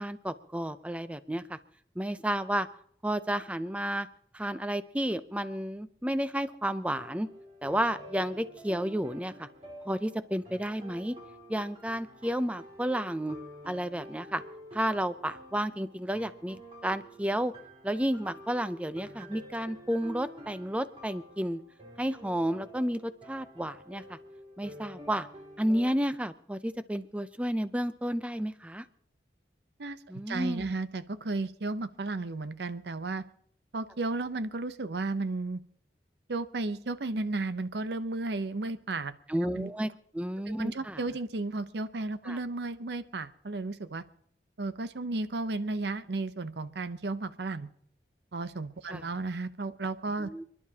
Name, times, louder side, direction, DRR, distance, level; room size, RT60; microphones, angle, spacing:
voice 1, 0.0-1.6 2.0-2.7 3.0-4.1 4.3-7.3 7.6-9.5 9.9-11.2 11.5-13.4 13.7-14.4 14.7-16.6 16.8-17.5 17.8-21.6 22.0-24.2 24.6-25.3 25.6-28.9 30.1-30.7 39.3-41.0 42.3-42.4 48.9-49.0 50.2-50.4, equal, 5° right, 12 dB, 0.5 m, -31 dB
sound 1, 6.9-25.9, equal, 30° right, 2.4 m, -49 dB
voice 2, 30.3-33.2 33.7-35.6 36.3-39.1 39.5-39.7 40.5-44.0 44.6-47.7 48.3-50.3, right 3 dB, 75° right, 12 dB, 0.7 m, -34 dB
29.0 x 11.0 x 2.8 m, 0.63 s
head